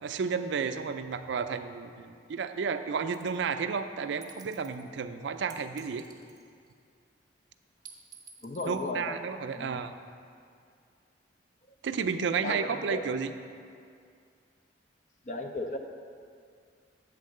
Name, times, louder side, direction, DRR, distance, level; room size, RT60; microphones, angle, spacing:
voice 1, 0.0-6.0 8.6-9.9 11.8-13.3, right 5 dB, 75° right, 9 dB, 0.4 m, -32 dB
sound 1, 3.1-3.4 4.2-4.8 5.5-6.7 7.8-8.9, right 6 dB, 20° right, 0.6 m, -51 dB
voice 2, 8.4-9.2 9.5-9.8 12.4-13.2 15.3-15.8, left 2 dB, 40° left, 5 dB, 0.5 m, -35 dB
8.6 x 3.6 x 6.4 m, 2.3 s
head